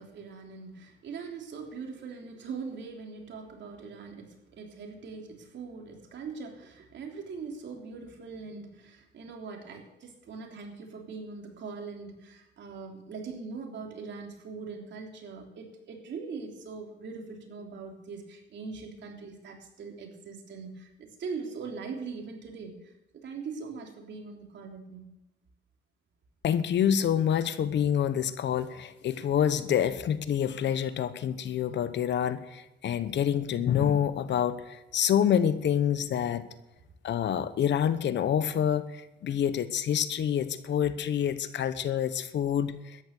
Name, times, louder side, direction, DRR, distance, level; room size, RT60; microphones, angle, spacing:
voice 1, 0.0-25.1, right 4 dB, 65° right, 2 dB, 3.3 m, -41 dB
voice 2, 26.4-36.4 37.0-43.0, left 9 dB, 65° left, 13 dB, 1.0 m, -27 dB
13.5 x 10.5 x 6.6 m, 0.96 s
cardioid pair, 90°, 20 cm